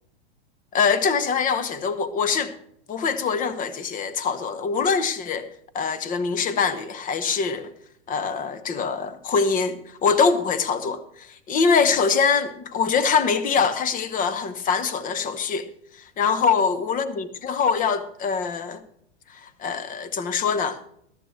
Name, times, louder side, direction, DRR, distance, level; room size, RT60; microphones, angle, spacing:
voice 1, 0.7-2.5 2.9-5.5 5.7-7.7 8.1-15.7 16.2-18.8 19.4-20.8, left 5 dB, 25° left, 1.0 m, -23 dB
13.5 x 12.5 x 3.2 m
hypercardioid pair, 125°, 35 cm